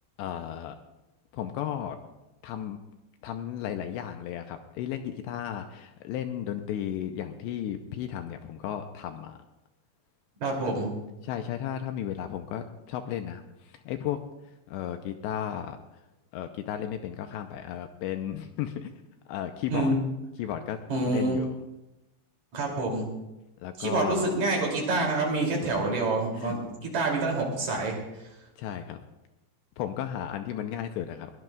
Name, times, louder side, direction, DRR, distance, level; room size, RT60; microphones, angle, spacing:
voice 1, 0.2-0.8 1.3-2.0 2.4-2.8 3.2-9.4 10.6-10.8 11.2-14.2 14.7-15.8 16.3-18.9 19.3-19.9 20.4-20.8 21.1-21.6 23.6-24.4 26.3-26.6 28.6-29.0 29.8-31.3, left 10 dB, 80° left, 6 dB, 2.7 m, -34 dB
voice 2, 10.4-10.9 19.7-20.0 20.9-21.4 22.5-23.1 23.8-28.0, right 2 dB, 40° right, -1 dB, 3.7 m, -27 dB
21.0 x 19.0 x 2.4 m, 0.97 s
omnidirectional pair, 5.5 m